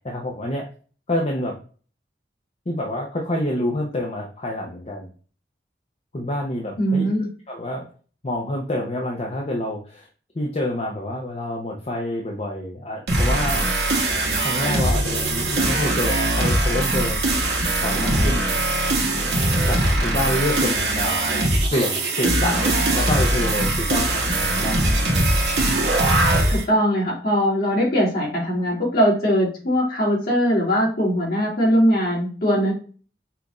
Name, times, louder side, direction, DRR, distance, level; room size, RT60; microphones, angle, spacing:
voice 1, 0.0-0.7 1.1-1.6 2.7-5.1 6.1-7.1 7.5-7.9 8.2-10.1 10.3-13.7 14.4-17.2 17.8-18.5 19.7-24.9, left 1 dB, 35° left, -1 dB, 0.7 m, -27 dB
voice 2, 6.8-7.3 26.5-32.7, equal, 55° left, -5 dB, 2.3 m, -20 dB
sound 1, 13.1-26.6, right 1 dB, 70° right, 1.2 m, -21 dB
5.7 x 2.5 x 3.0 m, 0.40 s
head